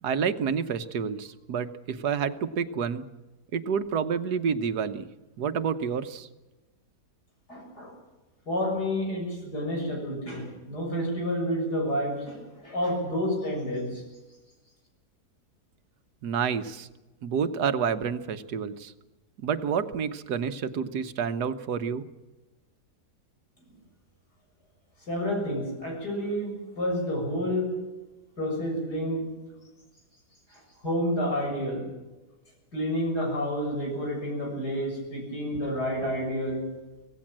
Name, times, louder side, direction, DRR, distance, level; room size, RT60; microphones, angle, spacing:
voice 1, 0.0-3.0 3.5-5.1 5.4-6.3 16.2-16.9 17.2-18.9 19.4-22.0, right 6 dB, 80° right, 10 dB, 1.6 m, -29 dB
voice 2, 7.5-7.9 8.5-14.0 25.1-27.8 28.4-29.3 30.5-31.9 32.7-36.8, equal, 85° left, 1 dB, 7.6 m, -29 dB
25.5 x 17.0 x 7.5 m, 1.1 s
omnidirectional pair, 1.7 m